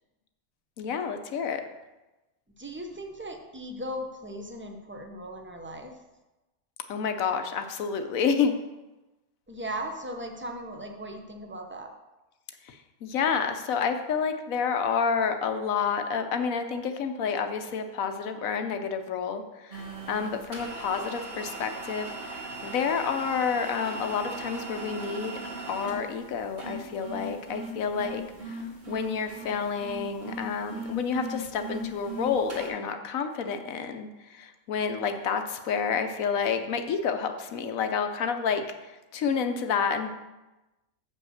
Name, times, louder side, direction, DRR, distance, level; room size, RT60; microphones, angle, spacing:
voice 1, 0.8-1.6 6.9-8.6 13.0-19.4 19.7-25.4 25.7-28.2 28.5-28.6 28.9-38.6 39.1-40.1, left 6 dB, 70° left, 7 dB, 1.1 m, -29 dB
voice 2, 2.6-5.9 9.5-11.9 27.9-28.4, right 1 dB, 10° right, 3 dB, 0.6 m, -38 dB
sound 1, 19.7-32.7, right 1 dB, 40° right, 1.9 m, -38 dB
7.9 x 5.4 x 6.4 m, 1.1 s
omnidirectional pair, 1.5 m